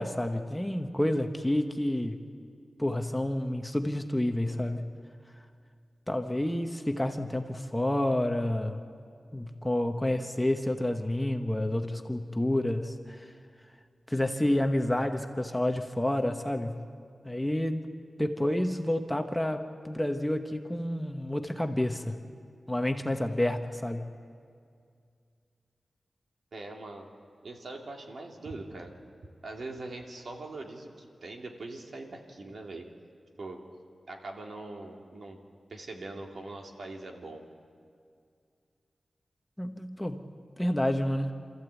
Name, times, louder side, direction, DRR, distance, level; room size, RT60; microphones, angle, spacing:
voice 1, 0.0-2.2 2.8-5.0 6.1-8.8 9.3-13.2 14.1-16.9 17.2-17.9 18.2-22.2 22.7-24.1 39.6-41.3, left 1 dB, 10° left, 5 dB, 1.0 m, -29 dB
voice 2, 26.5-27.1 27.4-28.9 29.4-32.9 33.4-33.6 34.1-35.4 35.7-37.4, right 2 dB, 65° right, 1 dB, 2.5 m, -42 dB
27.5 x 14.5 x 8.2 m, 2.3 s
wide cardioid pair, 135°, 0 cm